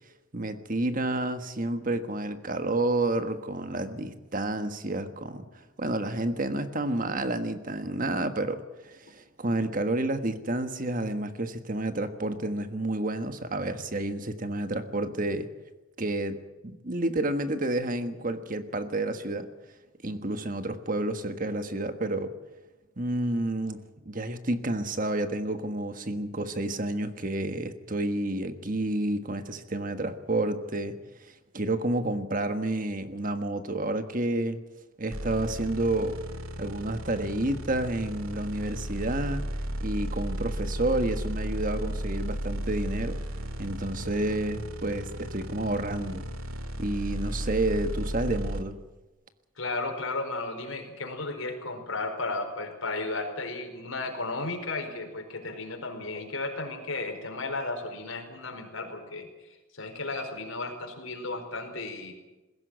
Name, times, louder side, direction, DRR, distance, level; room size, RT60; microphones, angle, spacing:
voice 1, 0.3-5.5 5.8-15.5 16.0-16.4 16.6-19.5 20.0-22.3 23.0-31.0 31.5-34.6 35.0-36.2 36.6-39.5 39.8-43.2 43.6-46.2 46.8-48.8, right 2 dB, 40° right, 9 dB, 1.5 m, -30 dB
sound 1, 35.1-48.6, equal, 90° right, 2.3 m, -34 dB
voice 2, 49.6-62.1, left 3 dB, 80° left, 4 dB, 4.7 m, -34 dB
21.0 x 16.5 x 9.3 m, 1.1 s
head